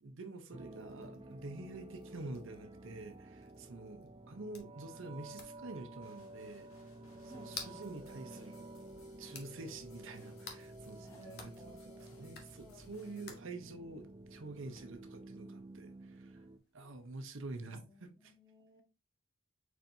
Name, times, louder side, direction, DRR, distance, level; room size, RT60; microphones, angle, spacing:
voice 1, 0.0-6.7 7.2-8.7 9.2-16.4 16.7-18.3, right 2 dB, 60° right, 0.7 m, -47 dB
sound 1, 0.5-16.6, right 2 dB, 25° right, 0.4 m, -52 dB
sound 2, 0.7-17.1, left 5 dB, 50° left, 1.1 m, -56 dB
voice 2, 0.7-1.5 7.3-7.8 11.0-12.3 12.6-13.4 17.6-18.8, equal, 15° left, 1.3 m, -58 dB
sound 3, 6.0-13.4, left 3 dB, 75° left, 1.2 m, -64 dB
4.4 x 4.4 x 2.6 m
head